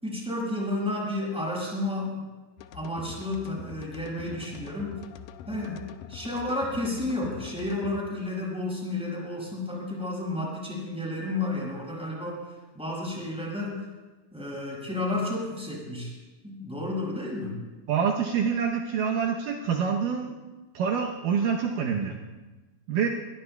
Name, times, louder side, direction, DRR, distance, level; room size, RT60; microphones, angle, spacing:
voice 1, 0.0-2.2 2.7-5.0 5.5-12.4 12.7-13.9 14.3-16.1 16.4-17.6, left 2 dB, ahead, -4 dB, 6.2 m, -31 dB
sound 1, 2.6-8.0, left 8 dB, 80° left, 2.2 m, -44 dB
voice 2, 17.9-20.3 20.7-22.2 22.9-23.1, right 6 dB, 75° right, 0 dB, 2.5 m, -26 dB
23.5 x 21.5 x 2.3 m, 1.2 s
omnidirectional pair, 4.0 m